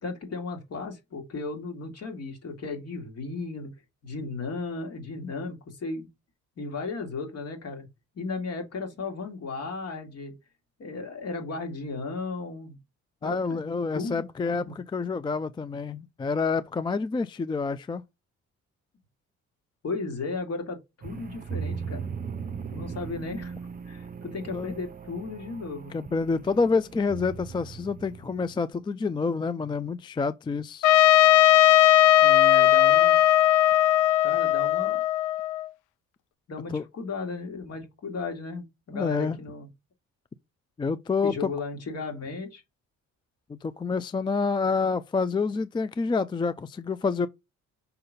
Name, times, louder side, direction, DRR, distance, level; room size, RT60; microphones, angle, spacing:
voice 1, 0.0-3.7 4.0-6.1 6.6-7.9 8.2-10.3 10.8-12.8 13.2-13.6 13.9-14.7 19.8-22.1 22.7-23.5 23.9-25.9 32.2-33.2 34.2-35.0 36.5-39.7 41.2-42.6, left 3 dB, 55° left, 2.3 m, -35 dB
voice 2, 13.2-18.0 24.5-24.7 25.9-30.9 36.7-36.8 38.9-39.4 40.8-41.5 43.5-47.3, left 4 dB, 15° left, 0.3 m, -28 dB
sound 1, 21.0-28.7, right 6 dB, 30° right, 0.6 m, -38 dB
Trumpet, 30.8-35.7, left 13 dB, 90° left, 0.5 m, -18 dB
5.6 x 3.9 x 5.2 m
cardioid pair, 90°, 30 cm